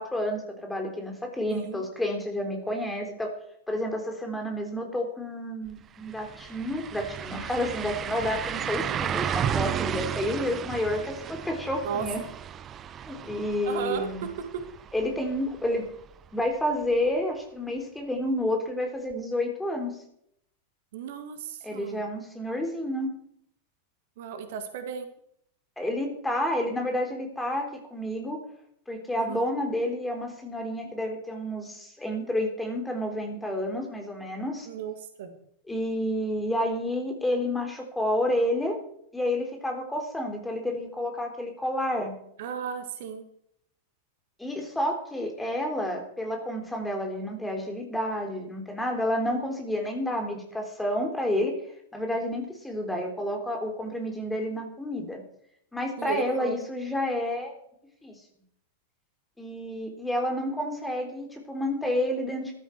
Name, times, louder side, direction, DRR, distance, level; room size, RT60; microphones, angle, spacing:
voice 1, 0.0-3.3 3.7-12.2 13.1-14.2 14.9-15.9 16.3-20.0 21.6-23.1 25.8-28.4 28.9-34.7 35.7-38.8 39.1-42.1 44.4-51.6 51.9-55.2 55.7-57.5 58.0-58.1 59.4-62.5, left 1 dB, 5° left, 3 dB, 3.5 m, -30 dB
voice 2, 1.5-1.8 11.8-12.0 13.6-14.1 14.5-14.6 20.9-22.0 24.2-25.1 29.2-29.5 34.6-35.3 42.4-43.2 56.0-56.6, right 7 dB, 55° right, 7 dB, 1.7 m, -35 dB
sound 1, 5.7-5.8 6.1-15.9 16.2-16.3 19.1-19.2, right 9 dB, 25° right, 0.7 m, -33 dB
14.5 x 12.5 x 4.7 m, 0.72 s
figure-of-eight pair, 90°, 0 cm